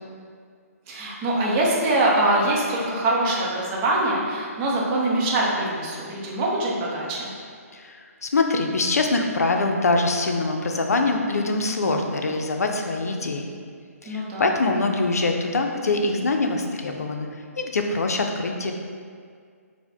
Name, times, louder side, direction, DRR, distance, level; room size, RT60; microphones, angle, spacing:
voice 1, 0.9-7.3 14.0-14.6, right 1 dB, 25° right, -4 dB, 0.6 m, -23 dB
voice 2, 7.7-13.5 14.0-17.3 17.6-18.7, left 3 dB, 75° left, 3 dB, 0.4 m, -24 dB
4.5 x 2.1 x 3.4 m, 2.1 s
figure-of-eight pair, 140°, 8 cm